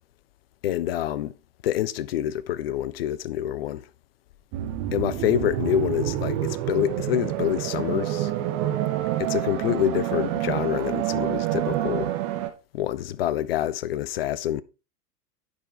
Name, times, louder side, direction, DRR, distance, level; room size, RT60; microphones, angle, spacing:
voice 1, 0.6-1.3 1.6-3.9 4.9-8.3 9.2-12.1 12.7-14.6, left 12 dB, 40° left, 0.4 m, -26 dB
sound 1, 4.5-12.5, right 13 dB, 20° right, 0.4 m, -27 dB
9.4 x 4.5 x 3.3 m
figure-of-eight pair, 95°, 47 cm